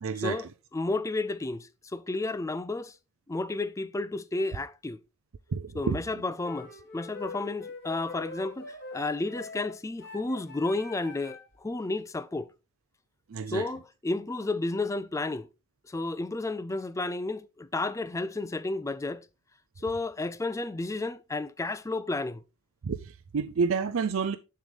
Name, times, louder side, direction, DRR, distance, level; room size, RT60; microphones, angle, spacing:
voice 1, 0.0-0.5 5.5-6.0 13.3-13.7 22.8-24.4, right 5 dB, 65° right, 0.5 m, -29 dB
voice 2, 0.7-2.9 3.3-5.0 5.7-12.5 13.5-15.5 15.9-19.3 19.8-22.4, left 2 dB, 15° left, 0.4 m, -32 dB
sound 1, 6.4-11.5, left 3 dB, 55° left, 4.4 m, -43 dB
7.3 x 6.5 x 3.3 m
head